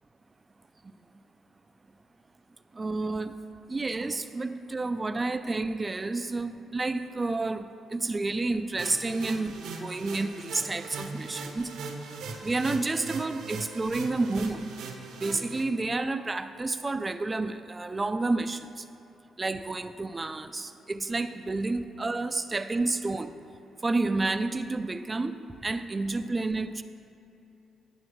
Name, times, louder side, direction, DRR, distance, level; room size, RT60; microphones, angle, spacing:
voice 1, 2.7-3.3 3.7-11.7 12.4-14.7 15.2-18.8 19.4-23.3 23.8-25.4 25.6-26.8, right 3 dB, 25° right, 10 dB, 0.3 m, -30 dB
sound 1, 8.8-15.6, right 4 dB, 85° right, 1.0 m, -40 dB
10.5 x 8.6 x 3.1 m, 2.9 s
cardioid pair, 90°, 0 cm